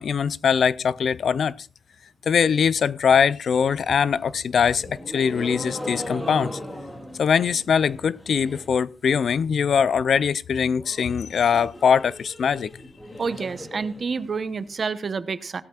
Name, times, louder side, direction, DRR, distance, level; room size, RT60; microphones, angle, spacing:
voice 1, 0.0-1.7 2.3-6.6 7.2-12.7, left 7 dB, 60° left, 0.5 m, -22 dB
sound 1, 3.8-8.8 9.1-9.7 10.0-10.1 10.3-10.4 10.7-14.7, equal, 15° left, 2.4 m, -38 dB
voice 2, 13.2-15.6, right 5 dB, 40° right, 0.9 m, -28 dB
17.5 x 13.0 x 2.4 m
wide cardioid pair, 140°, 0 cm